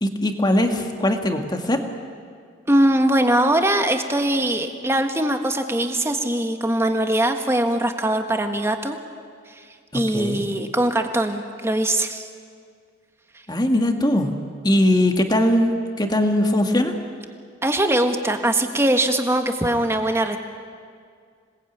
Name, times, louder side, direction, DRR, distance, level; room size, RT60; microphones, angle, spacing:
voice 1, 0.0-1.8 9.9-10.4 13.5-14.4 14.6-16.9, left 1 dB, 20° left, 4 dB, 1.9 m, -20 dB
voice 2, 2.7-9.0 9.9-12.3 17.6-20.4, right 1 dB, 15° right, 5 dB, 1.5 m, -21 dB
27.0 x 19.5 x 9.4 m, 2.2 s
head